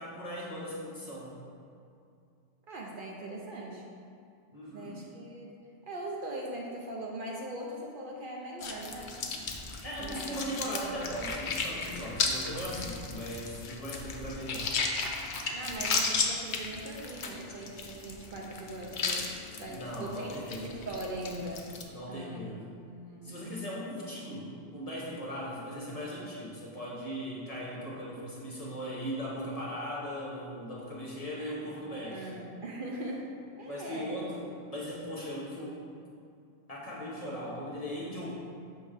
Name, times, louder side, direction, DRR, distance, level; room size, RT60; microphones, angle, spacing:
voice 1, 0.0-1.3 4.5-5.0 9.8-14.7 19.7-20.7 21.9-22.7 23.2-32.3 33.6-35.8 36.7-38.3, equal, 35° left, -5 dB, 1.0 m, -38 dB
voice 2, 2.7-3.8 4.7-5.6 5.9-9.2 10.0-10.4 10.7-10.8 15.5-21.7 22.1-22.4 22.8-23.4 31.3-34.2, right 1 dB, 55° right, -2 dB, 0.7 m, -41 dB
sound 1, 8.6-21.8, left 4 dB, 55° left, 0.6 m, -35 dB
6.4 x 3.1 x 4.9 m, 2.5 s
omnidirectional pair, 1.2 m